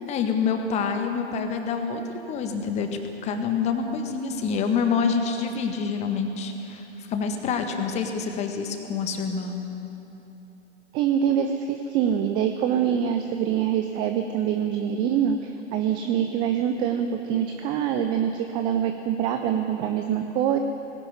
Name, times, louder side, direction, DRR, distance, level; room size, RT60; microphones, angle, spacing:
voice 1, 0.1-2.0 2.3-2.9 3.2-6.8 7.1-9.6, left 5 dB, 20° left, 5 dB, 1.7 m, -26 dB
voice 2, 10.9-20.6, right 9 dB, 15° right, 7 dB, 0.5 m, -25 dB
19.0 x 17.0 x 9.7 m, 2.9 s
figure-of-eight pair, 115°, 35 cm